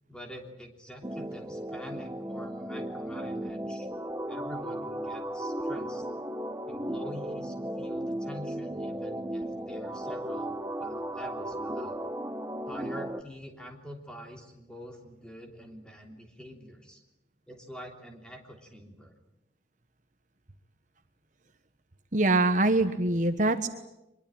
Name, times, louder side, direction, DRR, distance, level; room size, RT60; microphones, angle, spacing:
voice 1, 0.1-3.9 4.3-6.0 6.7-12.0 12.7-17.0 17.5-19.1, equal, 5° left, 2 dB, 3.2 m, -45 dB
sound 1, 1.0-13.2, right 1 dB, 15° right, 1.1 m, -35 dB
voice 2, 22.1-23.7, right 2 dB, 45° right, 8 dB, 1.3 m, -24 dB
24.0 x 22.0 x 8.9 m, 0.93 s
head